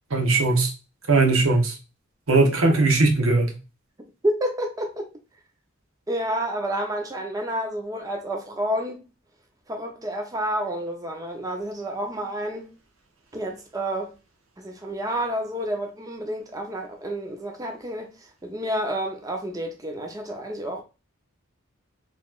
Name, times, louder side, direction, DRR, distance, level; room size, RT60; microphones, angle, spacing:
voice 1, 0.1-0.7 1.1-1.8 2.3-3.5, right 3 dB, 70° right, 1.0 m, -19 dB
voice 2, 4.2-5.1 6.1-9.0 9.7-12.7 13.3-14.1 14.6-18.1 18.4-20.8, right 1 dB, 15° right, 0.6 m, -29 dB
4.0 x 3.1 x 2.4 m
head